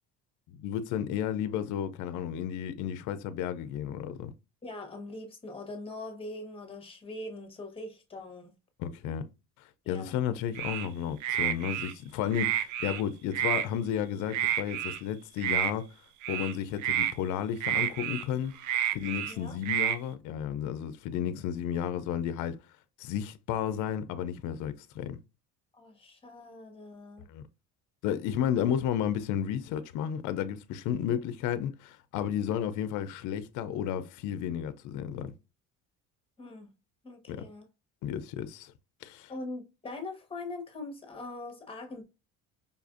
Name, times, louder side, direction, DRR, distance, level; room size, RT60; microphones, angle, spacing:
voice 1, 0.5-4.3 8.8-9.2 9.9-15.9 16.3-18.5 18.9-22.6 23.0-25.2 27.3-27.4 28.0-35.3 37.3-37.4 38.0-38.7 39.0-39.3, left 9 dB, 70° left, 0.5 m, -32 dB
voice 2, 4.6-8.5 9.8-10.1 19.3-19.6 25.7-27.3 31.1-31.2 36.4-36.7 37.0-37.7 39.3-42.0, left 2 dB, 15° left, 1.0 m, -42 dB
sound 1, 10.5-10.9 11.2-11.9 12.3-13.0 13.3-13.7 14.3-15.0 15.4-15.7 16.2-16.5 16.8-17.1 17.6-18.2 18.6-19.3 19.6-20.0, right 11 dB, 70° right, 0.5 m, -29 dB
5.2 x 2.4 x 2.4 m
cardioid pair, 120°, 31 cm